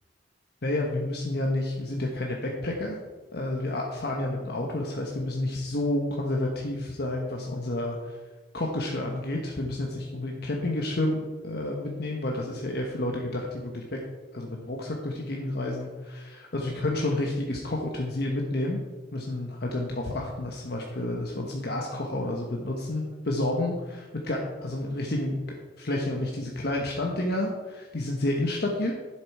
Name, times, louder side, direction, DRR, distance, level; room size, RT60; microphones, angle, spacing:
voice 1, 0.6-3.0 3.3-8.2 8.5-13.8 14.3-18.8 19.1-25.4 25.8-28.9, left 1 dB, 60° left, 0 dB, 1.2 m, -30 dB
10.5 x 7.9 x 4.7 m, 1.3 s
head